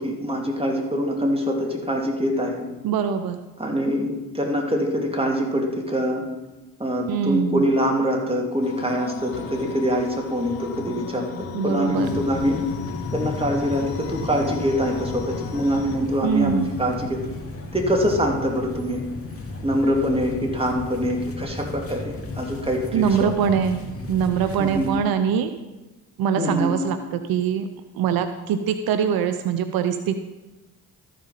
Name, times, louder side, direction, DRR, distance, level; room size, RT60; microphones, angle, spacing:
voice 1, 0.0-2.5 3.6-4.1 4.3-6.3 6.8-12.6 13.1-17.2 17.7-19.0 19.6-23.3 24.6-24.9 26.4-26.7, equal, 15° right, 0 dB, 2.7 m, -24 dB
voice 2, 2.8-3.4 7.1-7.6 11.5-12.2 16.2-16.7 22.9-23.8 24.1-25.5 26.2-27.7 27.9-30.2, right 8 dB, 75° right, 9 dB, 0.6 m, -23 dB
sound 1, 8.6-16.0, left 8 dB, 80° left, 0.9 m, -36 dB
sound 2, 12.0-24.9, left 3 dB, 40° left, 2.3 m, -34 dB
13.0 x 5.2 x 5.7 m, 1.1 s
supercardioid pair, 45°, 36 cm